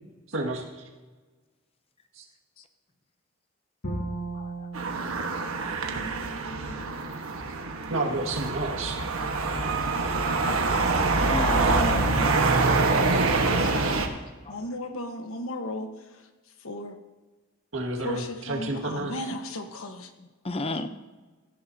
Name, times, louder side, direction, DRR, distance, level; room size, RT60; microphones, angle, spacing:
voice 1, 0.3-0.8 2.2-2.3 7.9-9.0 9.7-9.8 17.7-19.1, right 2 dB, 70° right, 1 dB, 2.0 m, -30 dB
Bowed string instrument, 3.8-7.0, right 2 dB, 55° left, 2.6 m, -37 dB
sound 1, 4.7-14.1, right 3 dB, 85° right, 1.3 m, -25 dB
voice 2, 5.9-7.1 13.5-14.1 14.5-16.3 16.6-17.0 18.0-20.1, left 1 dB, 80° left, 6 dB, 1.3 m, -36 dB
voice 3, 11.3-12.4 20.4-20.9, left 2 dB, 30° left, 9 dB, 0.7 m, -31 dB
17.0 x 14.5 x 2.8 m, 1.3 s
head